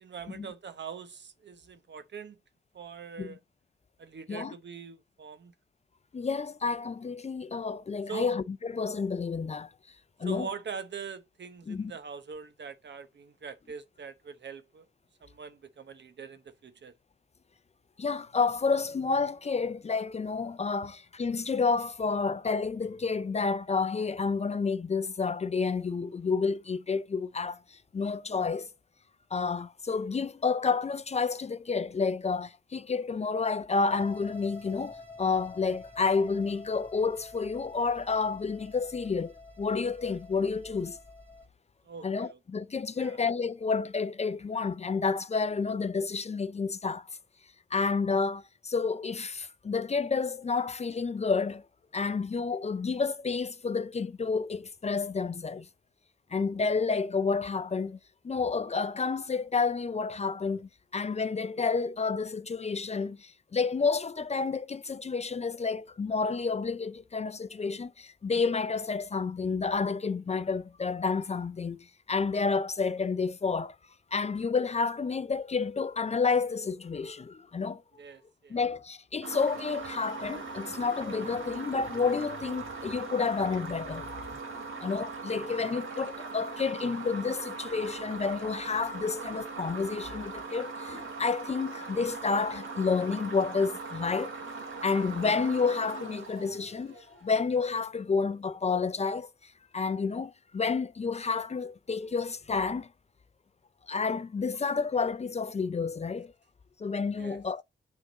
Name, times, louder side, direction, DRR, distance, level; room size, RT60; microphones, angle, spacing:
voice 1, 0.0-2.4 2.7-3.4 4.0-5.5 8.1-8.3 10.2-14.9 15.2-16.9 41.8-42.4 43.0-43.2 78.0-78.6 107.2-107.4, right 6 dB, 60° right, 0.8 m, -43 dB
voice 2, 6.1-9.7 10.2-10.5 11.7-11.9 18.0-28.7 29.3-41.0 42.0-47.1 47.7-51.6 51.9-55.7 56.3-58.0 58.2-73.8 74.1-77.8 78.5-84.1 84.5-94.4 94.8-102.9 103.9-106.3 106.8-107.6, left 4 dB, 35° left, 0.4 m, -30 dB
sound 1, 33.9-41.5, left 3 dB, 10° left, 1.7 m, -48 dB
sound 2, 79.2-97.2, right 4 dB, 80° right, 1.7 m, -40 dB
9.1 x 3.6 x 3.9 m
wide cardioid pair, 155°, 20 cm